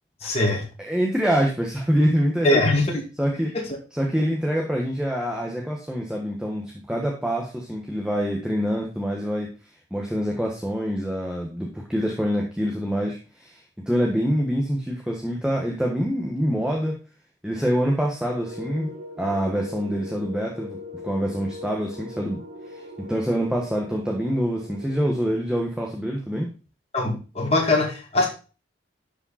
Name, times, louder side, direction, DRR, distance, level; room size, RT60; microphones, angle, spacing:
voice 1, 0.2-0.6 2.4-2.8 3.5-3.6 26.9-28.3, left 2 dB, 30° left, 0 dB, 2.1 m, -21 dB
voice 2, 0.8-2.6 3.2-3.5 3.9-9.5 9.9-13.6 13.9-17.0 17.4-18.9 19.2-20.8 21.0-22.4 23.0-26.5, equal, 5° right, -1 dB, 1.3 m, -25 dB
sound 1, 18.3-25.2, left 1 dB, 65° right, 1.8 m, -40 dB
11.5 x 5.2 x 4.2 m, 0.34 s
head